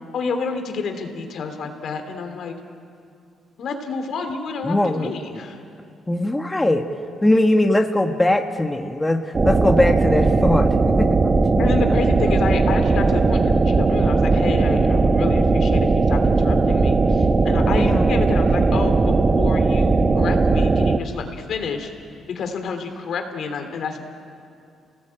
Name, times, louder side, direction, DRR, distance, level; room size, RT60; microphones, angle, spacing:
voice 1, 0.1-2.5 3.6-5.6 11.6-21.9 22.3-24.0, left 5 dB, 65° left, 6 dB, 3.0 m, -29 dB
voice 2, 4.6-5.1 6.1-6.9 7.2-11.7 17.8-18.1, left 1 dB, 10° left, 4 dB, 1.4 m, -21 dB
sound 1, 9.3-21.0, right 3 dB, 30° right, 1.0 m, -18 dB
29.0 x 18.5 x 8.9 m, 2.5 s
cardioid pair, 90°, 0 cm